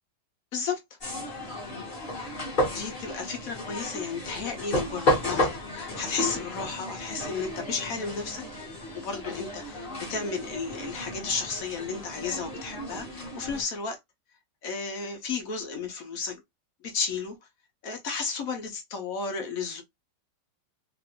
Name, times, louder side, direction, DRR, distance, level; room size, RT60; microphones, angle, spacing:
sound 1, 1.0-13.6, left 1 dB, 35° left, 1.0 m, -33 dB
voice 1, 2.7-14.0 14.6-16.4 16.8-17.4 17.8-19.8, left 5 dB, 60° left, 1.0 m, -33 dB
3.0 x 2.5 x 2.7 m
omnidirectional pair, 2.0 m